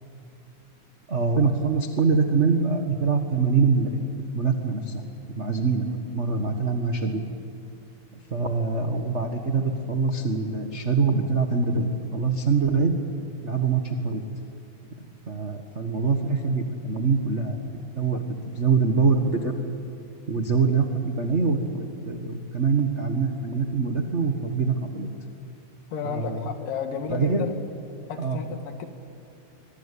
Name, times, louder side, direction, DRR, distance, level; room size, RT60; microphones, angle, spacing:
voice 1, 1.1-5.0 5.3-5.9 6.1-7.2 8.3-12.9 13.4-14.2 15.3-17.6 17.9-18.2 18.5-19.5 20.3-25.1 26.0-26.4 27.1-27.4 28.2-28.4, right 4 dB, 75° right, 5 dB, 0.6 m, -24 dB
voice 2, 25.9-27.6 28.1-28.9, left 6 dB, 75° left, 7 dB, 3.5 m, -32 dB
23.5 x 23.5 x 9.9 m, 2.5 s
omnidirectional pair, 3.9 m